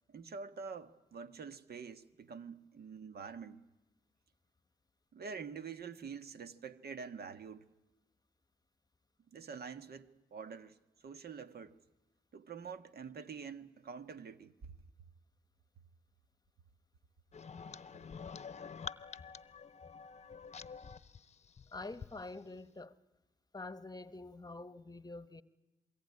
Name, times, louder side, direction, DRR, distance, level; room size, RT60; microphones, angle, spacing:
voice 1, 0.1-3.6 5.1-7.7 9.3-11.8 12.3-14.5, right 5 dB, 60° right, 1.6 m, -46 dB
sound 1, 17.3-22.1, left 5 dB, 35° left, 0.9 m, -48 dB
voice 2, 21.7-23.0 23.5-25.4, left 2 dB, 20° left, 1.2 m, -46 dB
27.0 x 22.5 x 9.8 m
supercardioid pair, 60°, 19 cm